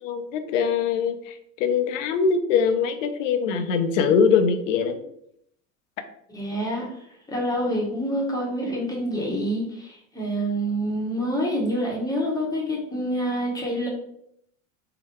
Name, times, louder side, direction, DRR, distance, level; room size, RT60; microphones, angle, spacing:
voice 1, 0.0-5.0, left 6 dB, 70° left, 8 dB, 0.5 m, -22 dB
voice 2, 6.3-7.0 7.3-13.9, equal, 10° left, -3 dB, 0.9 m, -27 dB
2.8 x 2.0 x 3.0 m, 0.73 s
hypercardioid pair, 75°, 41 cm